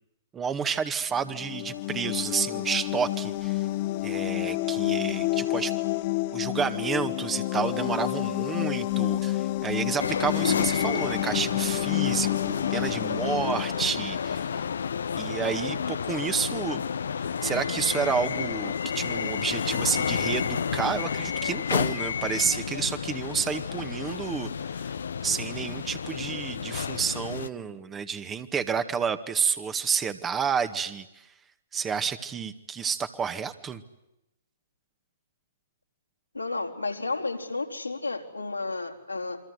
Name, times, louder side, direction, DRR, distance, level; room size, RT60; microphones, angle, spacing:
voice 1, 0.3-3.7 4.0-5.8 6.3-14.6 15.2-16.8 17.4-24.9 25.2-31.3 31.7-33.8, right 6 dB, 15° right, 10 dB, 1.9 m, -30 dB
sound 1, 1.2-14.7, left 17 dB, 40° left, 1.2 m, -29 dB
sound 2, 10.0-27.5, left 7 dB, 65° left, 1.0 m, -30 dB
voice 2, 36.3-39.4, left 3 dB, 85° left, 2 dB, 4.4 m, -32 dB
28.5 x 25.0 x 8.2 m, 0.88 s
figure-of-eight pair, 120°, 0 cm